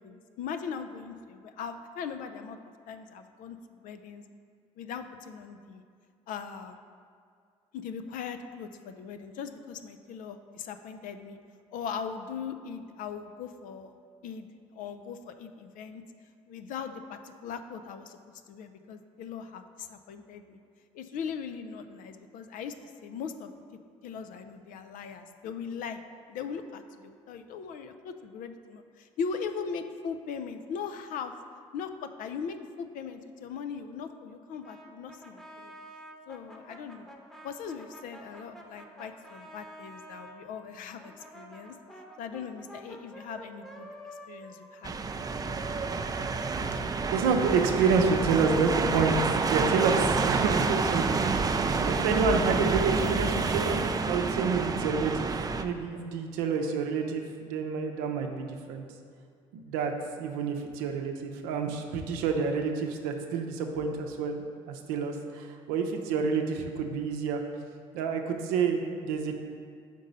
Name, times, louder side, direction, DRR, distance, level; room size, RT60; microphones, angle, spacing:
voice 1, 0.0-2.6 2.9-3.6 3.8-4.2 4.8-5.8 6.3-6.8 7.7-11.4 11.7-13.9 14.2-14.5 14.7-16.0 16.5-18.2 18.5-20.6 20.9-23.5 24.0-26.0 26.3-31.3 31.7-35.7 36.3-37.1 37.4-41.7 42.2-43.9 44.3-45.1 45.4-45.6, left 6 dB, 65° left, 9 dB, 0.5 m, -39 dB
Brass instrument, 34.6-40.4 41.0-45.7, equal, 5° left, 0.9 m, -49 dB
sound 1, 44.8-55.6, right 4 dB, 25° right, 0.4 m, -28 dB
voice 2, 47.1-51.4 51.8-53.8 54.1-58.8 59.5-59.9 60.2-67.4 67.9-69.3, right 5 dB, 85° right, 4 dB, 0.6 m, -28 dB
5.2 x 3.9 x 5.3 m, 2.2 s
supercardioid pair, 65°, 15 cm